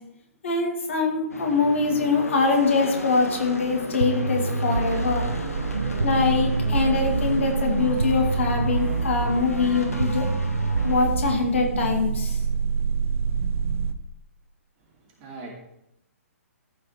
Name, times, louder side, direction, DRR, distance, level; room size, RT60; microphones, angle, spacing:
voice 1, 0.4-5.3 6.0-10.3 10.8-12.4, left 4 dB, 55° left, 2 dB, 2.3 m, -23 dB
sound 1, 1.3-11.1, left 1 dB, 75° left, 1.7 m, -35 dB
sound 2, 4.0-12.0, right 3 dB, 80° right, 0.4 m, -28 dB
sound 3, 5.2-13.9, right 6 dB, 60° right, 0.8 m, -29 dB
voice 2, 14.8-15.5, right 3 dB, 30° right, -1 dB, 2.8 m, -42 dB
14.0 x 5.0 x 4.6 m, 0.82 s
figure-of-eight pair, 120°, 8 cm